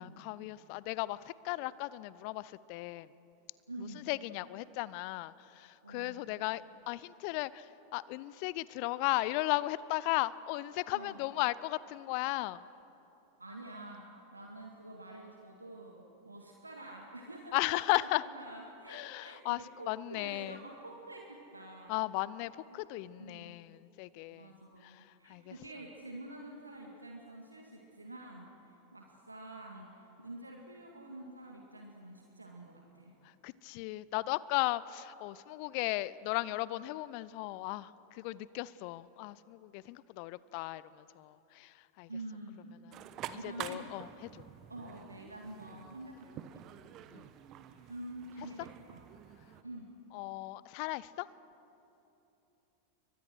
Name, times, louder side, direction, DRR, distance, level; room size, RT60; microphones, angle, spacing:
voice 1, 0.0-3.1 3.8-12.7 17.5-18.2 18.9-20.6 21.9-24.5 24.8-25.5 33.4-42.1 42.8-43.0 43.3-44.4 47.1-47.3 50.1-51.3, left 19 dB, 45° left, 19 dB, 0.6 m, -36 dB
voice 2, 3.7-4.0 5.8-6.4 10.9-11.2 13.4-22.1 22.7-22.8 23.2-23.6 24.3-33.1 42.1-42.7 43.3-44.0 44.7-46.6 47.9-49.1 49.6-49.9, right 1 dB, 80° right, 1 dB, 2.1 m, -48 dB
sound 1, 42.9-49.6, right 10 dB, 35° right, 1.2 m, -48 dB
30.0 x 23.5 x 6.3 m, 2.9 s
figure-of-eight pair, 90°, 0 cm